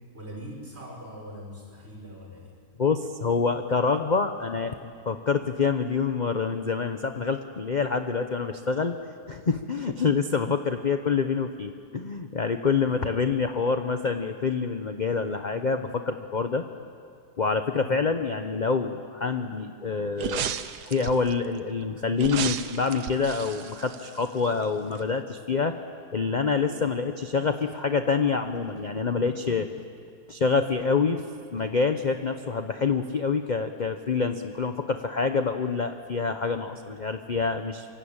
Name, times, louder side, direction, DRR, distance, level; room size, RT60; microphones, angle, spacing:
voice 1, 0.1-2.5 12.9-13.1 17.8-18.0 26.6-26.8, equal, 40° right, -1 dB, 6.1 m, -42 dB
voice 2, 2.8-4.7 5.0-8.9 9.3-16.6 17.4-20.6 20.8-25.7 26.1-29.7 30.3-31.2 31.5-37.9, left 5 dB, 35° left, 7 dB, 0.9 m, -26 dB
sound 1, 20.2-21.3 22.2-24.6 25.0-25.1, right 9 dB, 80° right, 1.5 m, -33 dB
26.0 x 24.0 x 8.9 m, 2.3 s
omnidirectional pair, 1.7 m